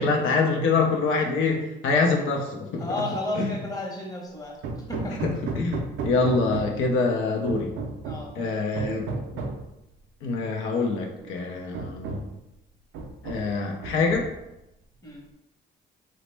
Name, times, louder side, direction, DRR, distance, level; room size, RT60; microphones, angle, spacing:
voice 1, 0.0-2.9 3.4-3.5 5.4-7.7 8.4-9.0 10.2-12.3 13.2-14.3, left 4 dB, 85° left, 1 dB, 0.5 m, -25 dB
voice 2, 2.8-4.6 4.9-5.2 8.0-8.5 15.0-15.2, left 1 dB, 20° left, -1 dB, 0.8 m, -32 dB
Hammer, 4.6-6.9 7.5-8.3 8.8-9.7 10.7-10.8 11.2-11.3 11.7-12.4 12.9-13.6 13.8-14.5, right 3 dB, 90° right, 0.4 m, -34 dB
3.0 x 2.0 x 3.2 m, 0.89 s
cardioid pair, 90°, 20 cm